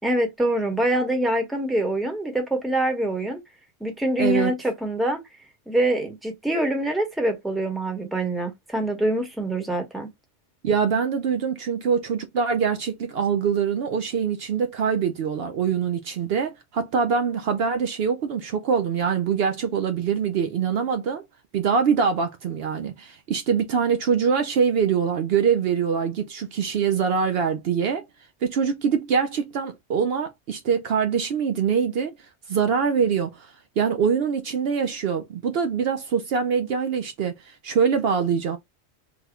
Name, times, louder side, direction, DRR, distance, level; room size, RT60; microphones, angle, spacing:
voice 1, 0.0-3.4 3.8-5.2 5.7-10.1, right 1 dB, ahead, 1.0 m, -25 dB
voice 2, 4.2-4.5 10.6-21.2 21.5-28.0 28.4-32.1 32.5-38.6, right 6 dB, 65° right, 0.8 m, -24 dB
3.4 x 2.2 x 3.5 m
omnidirectional pair, 1.2 m